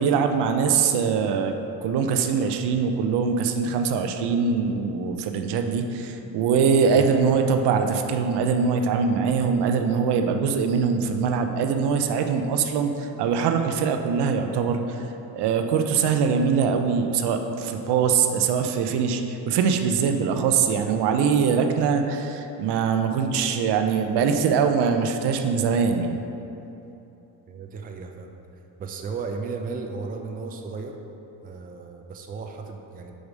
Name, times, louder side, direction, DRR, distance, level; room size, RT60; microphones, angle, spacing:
voice 1, 0.0-1.6 1.8-15.1 15.3-26.2, right 6 dB, 70° right, 6 dB, 0.7 m, -23 dB
voice 2, 27.5-28.3 28.8-31.0 31.4-33.1, right 4 dB, 20° right, 3 dB, 0.4 m, -35 dB
5.0 x 4.9 x 5.2 m, 3.0 s
cardioid pair, 115°, 42 cm